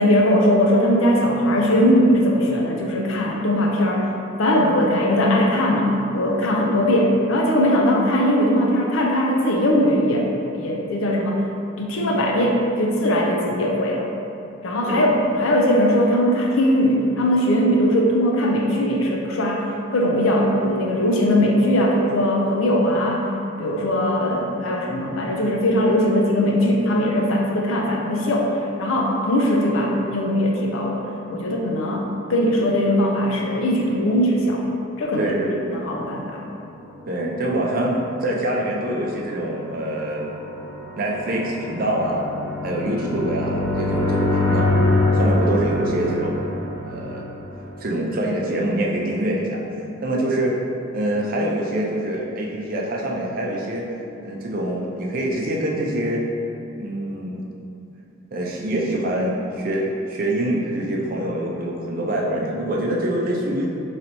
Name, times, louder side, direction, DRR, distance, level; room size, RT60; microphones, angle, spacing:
voice 1, 0.0-4.1 4.4-10.3 10.5-11.4 11.8-14.1 14.6-19.6 19.9-23.3 23.6-28.5 28.8-31.0 31.3-34.6 35.0-35.3 35.7-36.5, equal, 85° left, -1 dB, 0.5 m, -20 dB
voice 2, 35.2-35.8 37.1-40.3 41.0-42.3 42.6-44.7 45.1-46.4 46.8-47.3 47.8-49.6 50.0-50.5 50.9-53.9 54.2-56.2 56.8-57.5 58.3-63.7, right 1 dB, 45° right, -2 dB, 0.5 m, -25 dB
sound 1, 37.4-48.2, left 2 dB, 55° left, 1.1 m, -25 dB
4.0 x 3.2 x 2.9 m, 2.7 s
head